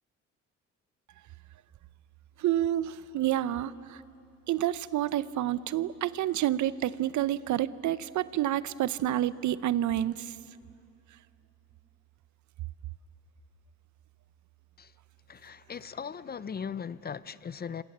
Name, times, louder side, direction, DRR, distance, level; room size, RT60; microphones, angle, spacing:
voice 1, 2.4-4.0 4.5-10.3, right 12 dB, 70° right, 0.7 m, -29 dB
voice 2, 15.3-17.8, left 7 dB, 30° left, 0.6 m, -38 dB
28.5 x 26.0 x 7.3 m
cardioid pair, 90°, 30 cm